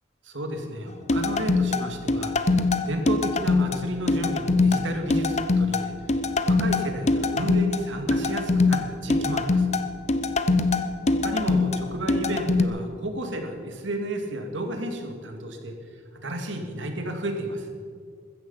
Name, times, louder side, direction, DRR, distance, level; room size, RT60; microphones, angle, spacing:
voice 1, 0.2-6.2 6.5-9.7 11.2-15.7 16.2-17.7, right 1 dB, 70° right, 4 dB, 2.3 m, -32 dB
sound 1, 1.1-12.6, left 3 dB, 35° left, 0.8 m, -23 dB
15.5 x 14.0 x 5.7 m, 2.1 s
head